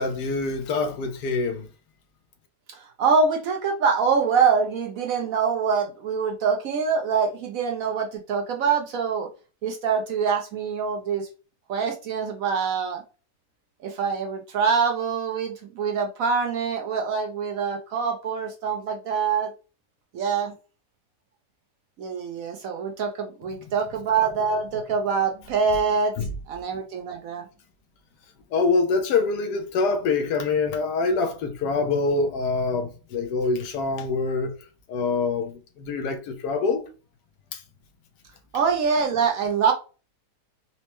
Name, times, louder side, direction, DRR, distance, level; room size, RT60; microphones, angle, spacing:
voice 1, 0.0-1.7 26.2-26.3 28.5-34.5 34.9-36.9 37.5-37.6, left 4 dB, 80° left, 1.2 m, -25 dB
voice 2, 2.7-9.3 9.6-11.3 11.7-13.0 13.8-19.5 20.1-20.5 22.0-26.1 26.5-27.5 38.5-39.7, right 5 dB, 65° right, 0.9 m, -24 dB
4.3 x 2.0 x 2.9 m
omnidirectional pair, 1.8 m